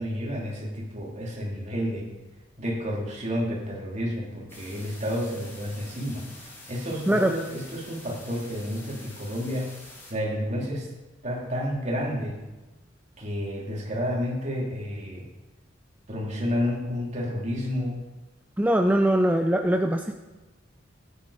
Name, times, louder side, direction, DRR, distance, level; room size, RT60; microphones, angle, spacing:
voice 1, 0.0-2.1 2.6-9.7 10.1-10.9 11.2-12.4 13.2-15.3 16.1-18.0, equal, 40° right, -2 dB, 3.4 m, -30 dB
sound 1, 4.5-10.1, left 2 dB, 15° left, 3.2 m, -47 dB
voice 2, 18.6-20.2, right 1 dB, 10° right, 4 dB, 0.6 m, -22 dB
17.0 x 10.0 x 5.0 m, 1.2 s
head